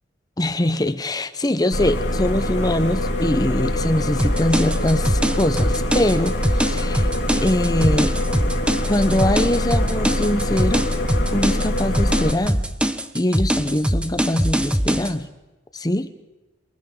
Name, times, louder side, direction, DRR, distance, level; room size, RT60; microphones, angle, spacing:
voice 1, 0.4-8.2 8.9-10.9 11.3-12.6 13.1-15.3 15.7-16.1, left 1 dB, 20° left, 10 dB, 0.9 m, -22 dB
sound 1, 1.7-12.3, left 1 dB, 65° left, 4.1 m, -24 dB
sound 2, 4.2-15.1, equal, 5° right, 1.0 m, -22 dB
28.5 x 24.0 x 3.9 m, 1.1 s
head